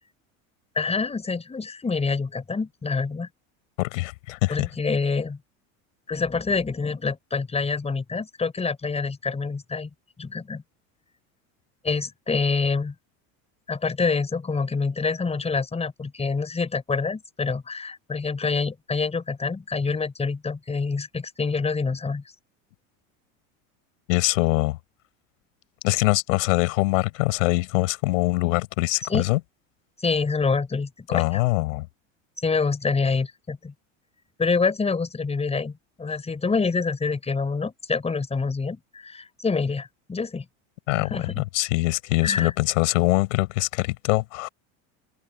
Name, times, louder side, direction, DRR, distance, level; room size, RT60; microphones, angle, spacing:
voice 1, 0.8-3.3 4.5-5.4 6.1-9.9 10.2-10.6 11.8-12.9 13.7-22.2 29.1-29.2 30.0-31.4 32.4-33.7 34.4-40.5 41.0-41.4 42.2-42.5, left 4 dB, 15° left, 5.4 m, -26 dB
voice 2, 3.8-4.7 24.1-24.8 25.8-29.4 31.1-31.9 40.9-44.5, left 21 dB, 85° left, 6.0 m, -23 dB
supercardioid pair, 120°, 37 cm